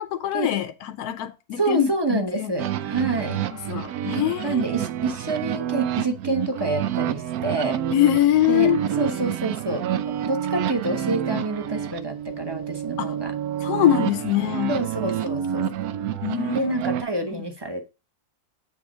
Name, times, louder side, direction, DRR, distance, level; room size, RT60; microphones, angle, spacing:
voice 1, 0.0-2.5 3.2-4.6 7.9-8.8 13.0-13.1 13.6-14.8 16.2-16.7 17.3-17.4, left 12 dB, 75° left, 1.2 m, -23 dB
voice 2, 1.6-3.4 4.4-7.8 8.5-13.3 14.7-15.7 16.5-17.9, right 2 dB, 20° right, 0.9 m, -27 dB
sound 1, 2.6-17.0, right 10 dB, 75° right, 1.1 m, -28 dB
7.4 x 3.8 x 6.2 m
omnidirectional pair, 1.6 m